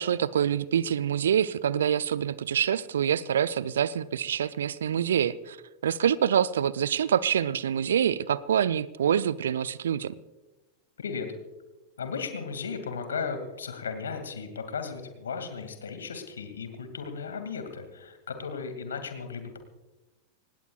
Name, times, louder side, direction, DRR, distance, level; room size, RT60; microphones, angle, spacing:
voice 1, 0.0-5.6 5.8-10.1, right 9 dB, 65° right, 18 dB, 0.5 m, -26 dB
voice 2, 12.0-19.6, left 5 dB, 70° left, 7 dB, 2.3 m, -35 dB
25.5 x 19.0 x 2.4 m, 1.1 s
figure-of-eight pair, 90°, 0 cm